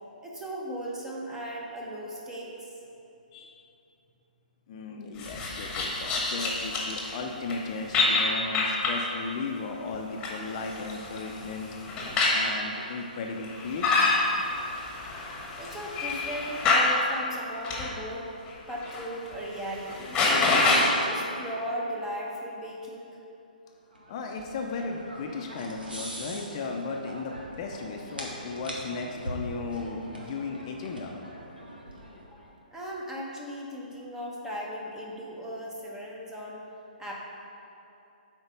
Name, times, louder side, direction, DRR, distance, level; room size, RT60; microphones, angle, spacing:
voice 1, 0.2-2.5 15.5-18.3 18.7-20.6 21.0-23.2 32.3-32.4 32.7-36.6 37.0-37.2, equal, 10° right, -3 dB, 1.1 m, -37 dB
voice 2, 4.7-11.7 12.3-14.1 24.1-31.2, left 4 dB, 40° left, 2 dB, 0.6 m, -36 dB
sound 1, 5.2-7.1 7.5-7.6 7.9-9.0 9.9-12.5 13.4-16.9 17.6-17.9 18.5-19.0 19.3-19.4 19.7-20.9, left 3 dB, 20° left, 1.3 m, -27 dB
sound 2, 23.9-32.5, equal, 90° right, 1.4 m, -42 dB
8.0 x 4.5 x 5.1 m, 2.8 s
figure-of-eight pair, 130°, 5 cm